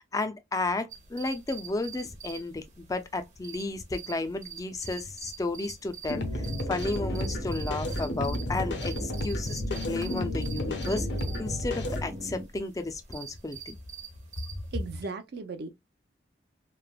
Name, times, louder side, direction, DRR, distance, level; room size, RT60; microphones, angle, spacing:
voice 1, 0.1-11.1 11.4-13.8, left 2 dB, 20° left, 0.3 m, -33 dB
sound 1, 0.9-14.9, right 7 dB, 40° right, 0.8 m, -46 dB
sound 2, 6.1-12.1, left 1 dB, 60° left, 0.6 m, -32 dB
sound 3, 6.1-12.4, left 2 dB, 90° right, 1.2 m, -40 dB
voice 2, 14.7-15.7, right 4 dB, 55° right, 0.5 m, -36 dB
3.2 x 2.0 x 2.2 m
head